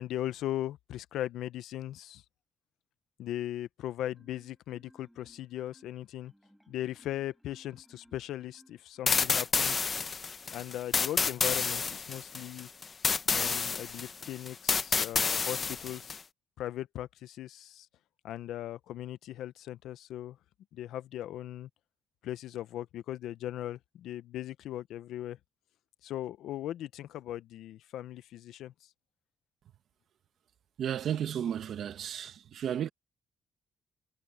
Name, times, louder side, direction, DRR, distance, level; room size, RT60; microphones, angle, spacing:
voice 1, 0.0-2.2 3.2-6.3 6.7-10.0 10.5-12.7 13.3-16.2 16.6-17.9 18.2-20.4 20.7-21.7 22.2-25.4 26.0-28.7, left 13 dB, 80° left, 0.7 m, -38 dB
Marimba xylophone, 4.1-9.3, equal, ahead, 6.7 m, -62 dB
sound 1, 9.1-16.2, left 5 dB, 40° left, 0.9 m, -29 dB
voice 2, 30.8-32.9, right 9 dB, 65° right, 1.5 m, -33 dB
cardioid pair, 90°, 0 cm